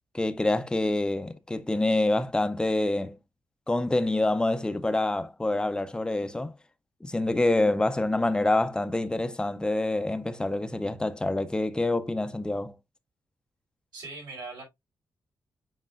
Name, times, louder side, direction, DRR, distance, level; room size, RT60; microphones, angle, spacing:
voice 1, 0.1-3.2 3.7-6.5 7.0-12.7, left 2 dB, 10° left, 0.6 m, -26 dB
voice 2, 13.9-14.6, right 3 dB, 80° right, 5.2 m, -40 dB
7.6 x 5.4 x 2.4 m
wide cardioid pair, 135°, 7 cm